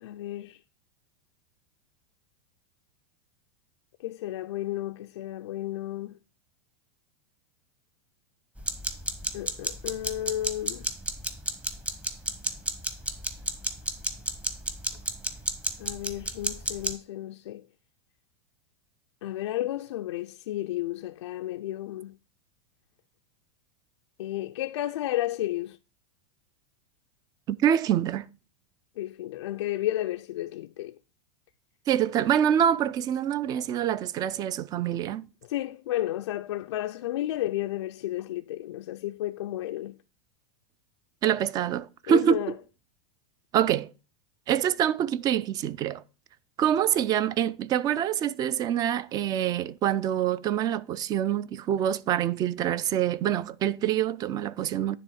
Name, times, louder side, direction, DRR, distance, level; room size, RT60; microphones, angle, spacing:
voice 1, 0.0-0.6 4.0-6.1 9.3-10.8 15.8-17.6 19.2-22.1 24.2-25.8 29.0-30.9 35.5-40.0 42.1-42.5, left 14 dB, 90° left, 0.4 m, -32 dB
sound 1, 8.6-17.0, right 1 dB, 10° right, 0.9 m, -33 dB
voice 2, 27.5-28.2 31.9-35.3 41.2-42.5 43.5-43.9 44.5-46.0 46.6-55.0, right 10 dB, 25° right, 0.4 m, -26 dB
10.0 x 3.4 x 6.2 m
supercardioid pair, 140°, 15 cm